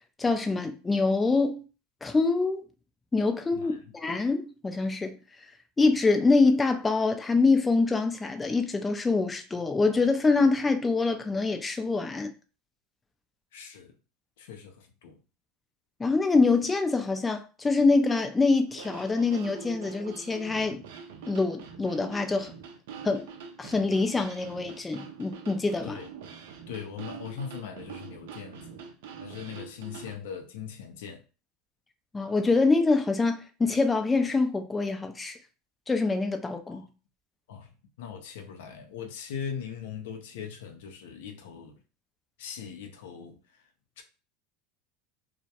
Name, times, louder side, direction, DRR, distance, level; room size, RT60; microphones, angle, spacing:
voice 1, 0.2-1.6 2.0-2.6 3.1-5.2 5.8-12.3 16.0-20.9 21.3-22.5 23.0-23.3 23.6-25.9 32.1-35.4 35.9-36.8, left 3 dB, 15° left, 0.4 m, -25 dB
voice 2, 3.5-3.9 13.5-13.9 14.4-15.2 25.8-26.1 26.7-28.8 29.2-31.2 36.7-36.9 37.5-37.7 38.0-41.8 42.4-43.4 44.0-44.1, left 7 dB, 80° left, 0.4 m, -40 dB
sound 1, 18.7-30.2, right 6 dB, 75° right, 0.4 m, -44 dB
2.2 x 2.0 x 2.8 m
hypercardioid pair, 95°, 0 cm